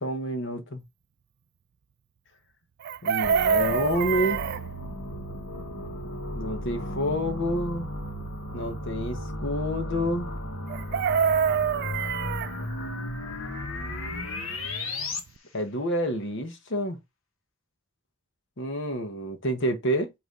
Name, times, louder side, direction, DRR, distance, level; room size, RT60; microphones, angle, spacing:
voice 1, 0.0-0.8 3.0-4.4 6.3-7.9 8.5-10.3 15.5-17.0 18.6-20.1, equal, 60° left, 1.2 m, -28 dB
Chicken rooster, 2.8-4.6 10.7-12.5 14.7-14.8 15.1-15.4, right 7 dB, 50° right, 0.3 m, -25 dB
sound 1, 3.2-15.2, left 1 dB, 75° left, 1.5 m, -35 dB
8.3 x 3.1 x 3.8 m
head